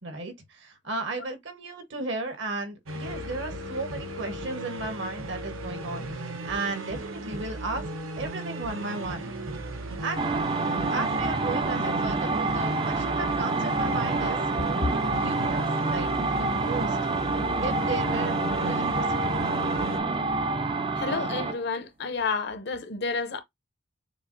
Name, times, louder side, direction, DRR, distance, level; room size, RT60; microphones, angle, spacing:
voice 1, 0.0-7.8 8.2-9.3 10.0-10.3 10.9-14.4 14.7-16.1 16.4-17.0 17.6-19.3, right 3 dB, 60° right, 1.2 m, -35 dB
sound 1, 2.9-20.0, right 1 dB, 85° right, 0.8 m, -35 dB
sound 2, 10.2-21.6, right 3 dB, 25° right, 0.4 m, -27 dB
voice 2, 20.9-23.4, left 4 dB, 55° left, 0.7 m, -30 dB
6.7 x 2.4 x 2.6 m
head